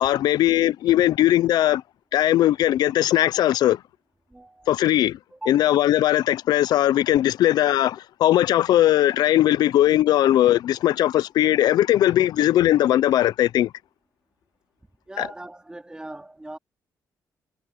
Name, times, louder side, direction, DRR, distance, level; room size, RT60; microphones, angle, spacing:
voice 1, 0.0-1.8 2.1-3.8 4.7-5.2 5.5-13.7 15.2-15.3, left 13 dB, 80° left, 0.5 m, -19 dB
voice 2, 4.3-4.7 5.4-5.6 15.1-16.6, right 1 dB, 10° right, 3.8 m, -39 dB
cardioid pair, 95°, 7 cm